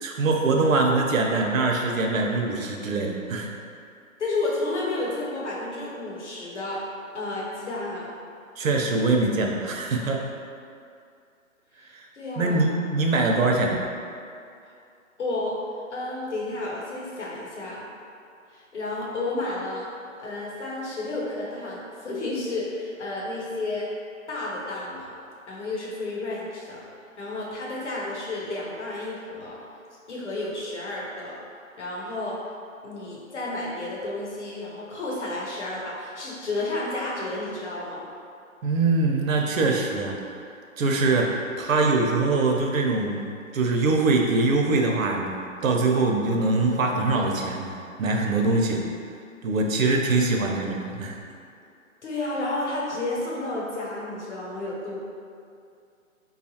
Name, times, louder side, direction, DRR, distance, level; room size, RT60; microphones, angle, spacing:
voice 1, 0.0-3.5 8.6-10.3 11.9-12.1 12.4-13.8 38.6-40.2 40.8-47.6 48.0-48.8 49.4-51.2, right 3 dB, 70° right, 1 dB, 0.6 m, -23 dB
voice 2, 4.2-6.8 7.1-8.1 11.8-12.7 14.6-14.7 15.2-15.6 15.9-17.9 18.5-19.9 20.2-23.9 24.3-25.1 25.5-26.8 27.2-29.6 30.1-31.4 31.8-32.5 32.8-38.1 52.0-54.9, left 2 dB, 55° left, -4 dB, 0.9 m, -31 dB
3.7 x 2.4 x 2.7 m, 2.4 s
hypercardioid pair, 170°, 41 cm